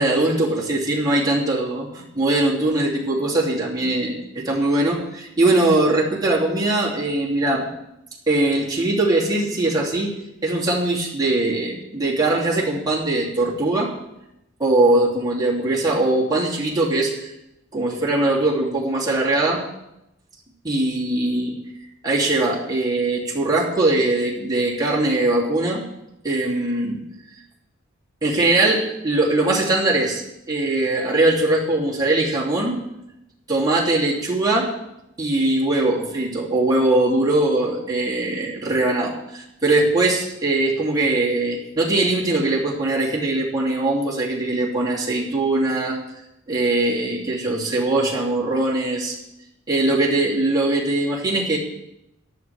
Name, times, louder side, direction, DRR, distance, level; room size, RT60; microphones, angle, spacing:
voice 1, 0.0-7.7 8.3-13.9 14.6-17.3 17.7-19.6 20.6-21.5 22.0-25.8 26.2-27.0 28.2-32.8 33.5-34.7 35.2-46.0 46.5-49.2 49.7-51.6, right 2 dB, 20° right, -5 dB, 3.0 m, -21 dB
18.0 x 12.5 x 3.5 m, 0.87 s
head